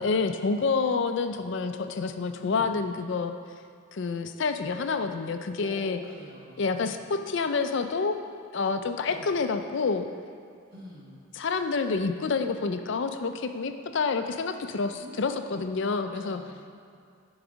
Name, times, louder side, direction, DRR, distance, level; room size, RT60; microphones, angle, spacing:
voice 1, 0.0-3.3 3.9-6.0 6.6-8.2 8.5-10.1 11.3-16.4, left 4 dB, 55° left, 8 dB, 0.4 m, -28 dB
voice 2, 2.4-2.7 5.6-7.1 9.1-9.3 10.7-11.2 15.0-15.6 16.0-16.8, right 1 dB, 45° right, -6 dB, 1.3 m, -47 dB
11.5 x 4.0 x 5.1 m, 2.3 s
head